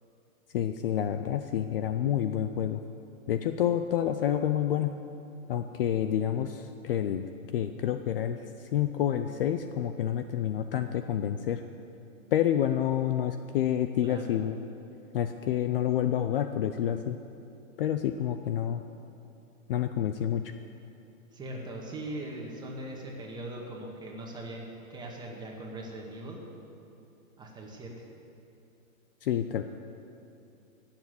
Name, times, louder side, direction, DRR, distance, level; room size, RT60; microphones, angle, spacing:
voice 1, 0.5-2.8 3.3-4.9 5.5-7.2 7.5-8.4 8.7-11.6 12.3-14.6 15.1-17.2 17.8-18.8 19.7-20.4 29.2-29.7, left 10 dB, 45° left, 9 dB, 0.6 m, -28 dB
voice 2, 21.3-24.6 24.9-26.4 27.4-27.9, right 1 dB, 10° right, -1 dB, 1.7 m, -40 dB
16.5 x 7.4 x 9.5 m, 2.7 s
hypercardioid pair, 150°, 41 cm